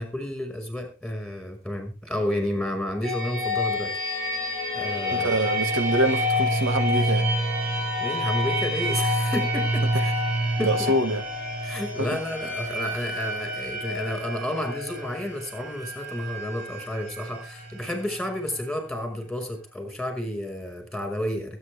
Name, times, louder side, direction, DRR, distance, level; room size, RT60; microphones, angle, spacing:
voice 1, 0.0-4.4 4.7-5.4 8.0-10.1 10.6-10.9 11.6-21.6, left 1 dB, ahead, 5.6 m, -31 dB
sound 1, 3.0-18.7, equal, 50° right, 7.1 m, -28 dB
voice 2, 5.1-7.3 10.6-11.2 12.0-12.1, right 1 dB, 80° right, 2.0 m, -25 dB
22.5 x 9.3 x 3.6 m
head